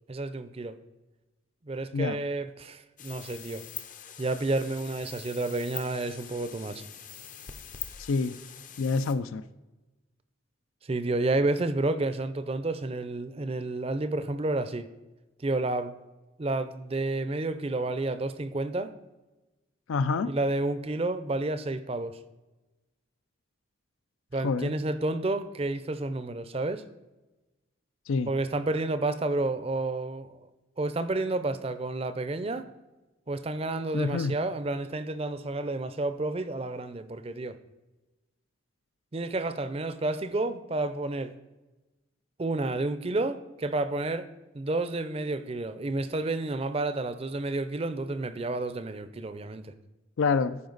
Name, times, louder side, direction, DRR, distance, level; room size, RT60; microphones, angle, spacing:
voice 1, 0.1-0.8 1.7-3.6 4.2-6.8 10.8-14.9 15.4-15.9 16.4-18.9 20.2-22.2 24.3-26.8 28.3-30.3 30.8-32.7 33.3-37.6 39.1-41.3 42.4-44.3 44.5-49.7, right 2 dB, 30° right, 0.5 m, -30 dB
sound 1, 3.0-9.1, left 9 dB, 40° left, 0.6 m, -44 dB
voice 2, 8.0-8.3 8.8-9.4 19.9-20.3 24.4-24.7 28.1-28.3 33.9-34.4 50.2-50.6, left 4 dB, 80° left, 0.4 m, -27 dB
14.0 x 5.1 x 3.9 m
head